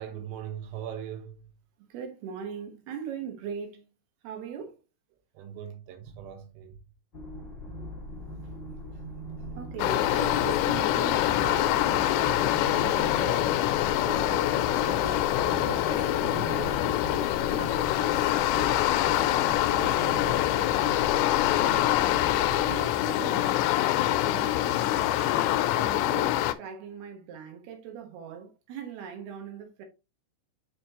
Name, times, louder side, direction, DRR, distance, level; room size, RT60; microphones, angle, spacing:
voice 1, 0.0-1.5 5.4-6.8 7.6-7.8, right 9 dB, 90° right, 3.8 m, -40 dB
voice 2, 1.9-3.9 4.2-4.7 9.5-13.6 13.9-18.9 19.1-19.4 19.7-21.1 21.4-21.9 22.4-23.8 24.1-29.8, right 6 dB, 65° right, 2.8 m, -40 dB
sound 1, 7.1-22.8, equal, 55° left, 0.8 m, -40 dB
sound 2, 9.8-26.5, left 14 dB, 85° left, 3.2 m, -25 dB
7.2 x 5.1 x 2.9 m
omnidirectional pair, 5.7 m